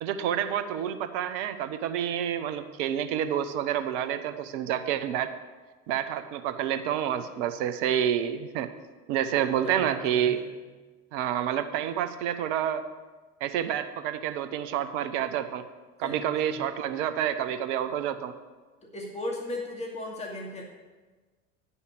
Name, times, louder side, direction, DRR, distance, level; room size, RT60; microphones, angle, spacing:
voice 1, 0.0-5.3 5.9-8.7 9.1-10.4 11.1-12.8 13.4-15.6 16.0-18.3, right 10 dB, 55° right, 10 dB, 0.9 m, -28 dB
voice 2, 9.3-10.3 16.0-16.6 18.9-20.6, left 1 dB, 15° left, -2 dB, 2.4 m, -37 dB
9.8 x 5.6 x 8.2 m, 1.3 s
figure-of-eight pair, 75°, 43 cm